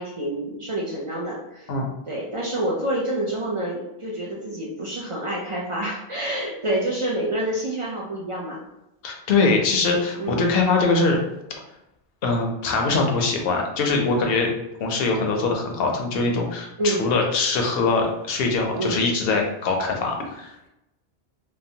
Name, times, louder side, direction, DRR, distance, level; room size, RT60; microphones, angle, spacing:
voice 1, 0.0-1.7 2.1-8.6 10.2-10.6 16.8-17.1 18.7-19.0, right 1 dB, 55° right, -4 dB, 0.3 m, -28 dB
voice 2, 9.0-11.2 12.2-14.5 14.8-20.7, left 3 dB, 65° left, 1 dB, 0.8 m, -22 dB
2.8 x 2.0 x 2.7 m, 0.88 s
omnidirectional pair, 1.1 m